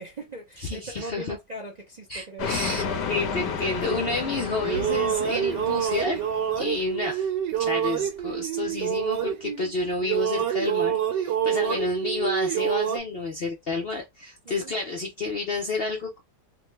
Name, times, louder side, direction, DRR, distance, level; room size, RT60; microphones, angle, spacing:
voice 1, 0.0-2.5 11.4-11.9 14.4-14.7, right 1 dB, 45° right, 0.5 m, -39 dB
voice 2, 0.6-1.4 2.1-2.8 3.1-6.2 6.5-7.3 7.6-16.2, left 3 dB, 65° left, 0.6 m, -30 dB
sound 1, 2.4-6.9, left 6 dB, 80° left, 1.3 m, -32 dB
sound 2, 4.4-9.7 10.0-13.0, right 10 dB, 85° right, 1.4 m, -27 dB
3.6 x 2.2 x 3.1 m
omnidirectional pair, 1.8 m